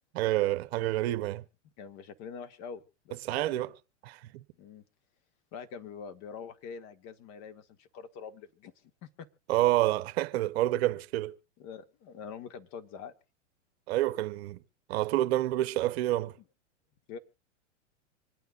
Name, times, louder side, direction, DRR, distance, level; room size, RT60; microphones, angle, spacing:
voice 1, 0.2-1.4 3.2-3.7 4.0-4.4 9.5-11.3 13.9-14.6 14.9-16.3, right 15 dB, 55° right, 0.9 m, -28 dB
voice 2, 1.8-3.7 4.6-4.8 5.5-8.7 9.0-9.3 11.6-13.1 17.1-17.2, left 6 dB, 45° left, 1.6 m, -44 dB
26.0 x 9.3 x 2.5 m
hypercardioid pair, 115°, 37 cm